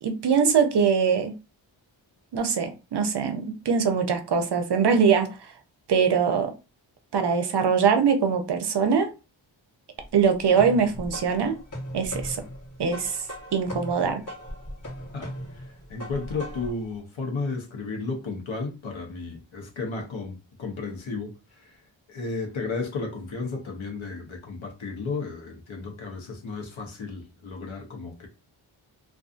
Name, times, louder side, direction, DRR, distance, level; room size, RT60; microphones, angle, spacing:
voice 1, 0.0-1.3 2.3-5.4 5.9-6.5 7.1-9.1 10.1-11.6 11.9-12.4 12.8-13.2 13.5-14.2, right 6 dB, 60° right, 0.6 m, -22 dB
sound 1, 10.0-16.8, equal, 40° left, 1.2 m, -38 dB
voice 2, 15.1-21.8 22.1-28.3, left 3 dB, 80° left, 0.8 m, -33 dB
2.5 x 2.4 x 2.4 m
wide cardioid pair, 100°, 47 cm